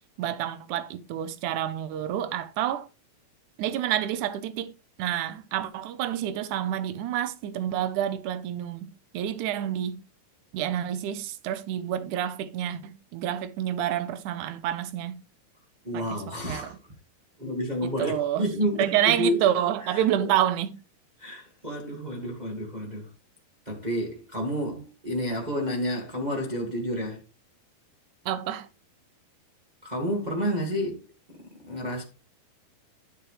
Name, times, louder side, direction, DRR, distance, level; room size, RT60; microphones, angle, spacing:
voice 1, 0.2-2.9 3.6-4.7 5.0-8.9 9.1-10.0 10.5-15.2 15.9-16.8 17.8-18.5 18.8-20.7 28.3-28.7, right 11 dB, 75° right, 1.9 m, -28 dB
voice 2, 15.8-16.8 17.4-19.5 19.9-20.3 21.2-23.1 23.6-27.2 29.8-31.0 31.7-32.0, equal, 25° right, 1.0 m, -30 dB
12.0 x 7.7 x 3.2 m
omnidirectional pair, 4.5 m